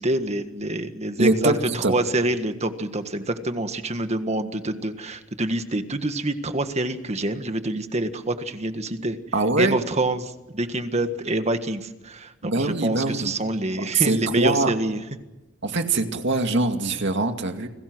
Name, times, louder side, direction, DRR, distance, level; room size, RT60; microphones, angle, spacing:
voice 1, 0.0-9.2 9.6-15.0, right 2 dB, 35° right, 8 dB, 1.7 m, -26 dB
voice 2, 1.2-1.9 9.3-9.8 12.4-13.3 13.9-14.7 15.6-17.7, right 2 dB, 60° right, 6 dB, 2.3 m, -23 dB
30.0 x 20.5 x 6.3 m, 1.0 s
head